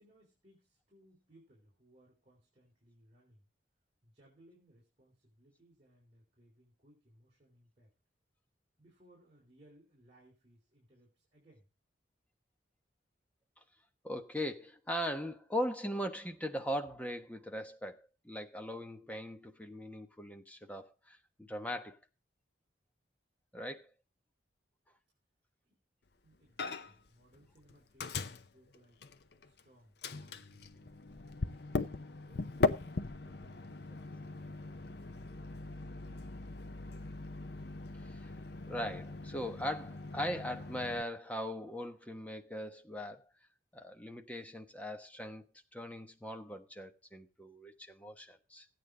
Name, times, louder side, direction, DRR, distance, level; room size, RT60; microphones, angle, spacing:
voice 1, 0.0-3.5 4.0-7.9 8.8-11.7 25.6-25.7 26.2-29.0 29.4-32.6 33.2-36.3, right 1 dB, 35° right, 3.9 m, -64 dB
voice 2, 14.0-22.0 23.5-23.9 38.1-38.3 38.7-43.2 43.7-45.4 45.7-48.6, equal, 10° left, 1.1 m, -40 dB
Microwave oven, 26.6-27.1 27.3-29.6 30.0-41.0, left 3 dB, 55° left, 0.7 m, -39 dB
15.0 x 9.1 x 3.8 m
head